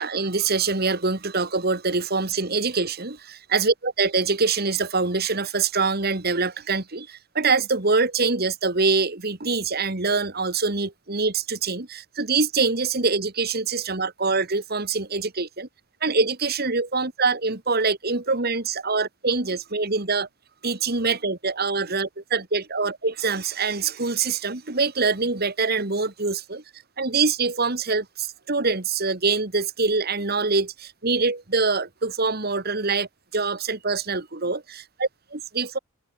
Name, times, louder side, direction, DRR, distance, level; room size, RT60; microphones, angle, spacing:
voice 1, 0.0-15.7 16.0-20.3 20.6-26.6 27.0-35.8, right 4 dB, 50° right, 2.2 m, -24 dB
open air
head